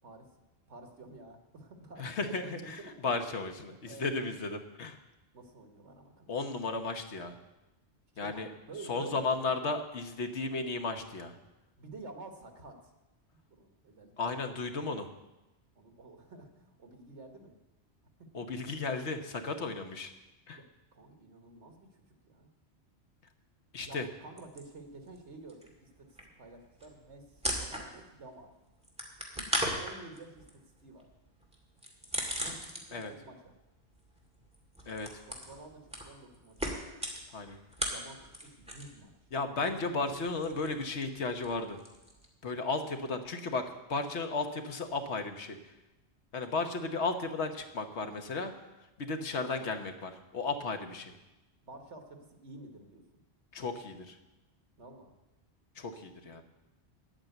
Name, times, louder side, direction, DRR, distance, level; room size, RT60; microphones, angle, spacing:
voice 1, 0.7-2.9 3.9-4.2 5.3-6.3 8.2-9.4 11.8-12.9 13.5-14.1 15.8-17.6 18.2-18.3 20.5-20.6 20.9-22.5 23.8-26.1 26.4-28.5 29.4-31.1 32.4-33.6 35.3-36.8 37.9-39.1 51.6-53.2 54.8-55.1, right 3 dB, 80° right, 4 dB, 1.8 m, -50 dB
voice 2, 2.0-5.0 6.3-7.4 8.2-8.5 8.9-11.4 14.2-15.1 18.3-20.1 20.5-20.6 23.7-24.1 32.9-33.1 34.8-35.2 37.3-37.6 39.3-41.8 42.4-45.6 46.3-48.5 49.0-51.1 53.5-54.2 55.7-56.4, left 3 dB, 75° left, 6 dB, 1.4 m, -34 dB
sound 1, 24.4-25.2 25.5-28.2 28.5-33.2 33.5-39.0 39.3-42.2, equal, 5° right, 2.0 m, -38 dB
10.0 x 8.9 x 7.9 m, 1.0 s
omnidirectional pair, 1.2 m